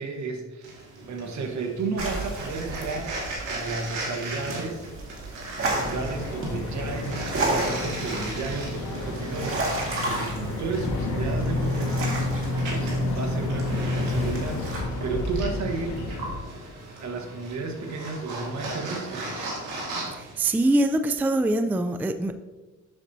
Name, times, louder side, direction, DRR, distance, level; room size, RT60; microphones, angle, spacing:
voice 1, 0.0-4.9 5.6-16.0 16.9-19.3 20.3-20.6, right 4 dB, 65° right, 3 dB, 1.3 m, -33 dB
sound 1, 0.6-20.3, right 2 dB, 85° right, 2.0 m, -37 dB
sound 2, 2.0-14.8, right 2 dB, 45° right, 1.9 m, -33 dB
Boat Water vehicle, 5.6-16.4, left 2 dB, 75° left, 1.3 m, -30 dB
voice 2, 20.1-22.4, right 1 dB, 5° right, 9 dB, 0.3 m, -24 dB
7.3 x 6.6 x 2.7 m, 1.2 s
cardioid pair, 90°, 30 cm